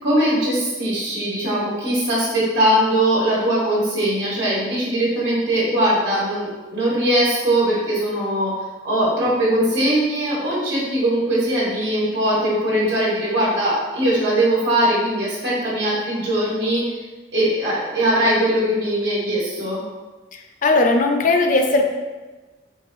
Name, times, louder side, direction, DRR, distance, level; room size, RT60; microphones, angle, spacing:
voice 1, 0.0-8.5 8.8-17.0 17.3-19.8, right 1 dB, 90° right, -8 dB, 1.4 m, -20 dB
voice 2, 20.3-21.9, left 2 dB, 50° left, 4 dB, 0.5 m, -18 dB
4.5 x 3.3 x 3.0 m, 1.2 s
head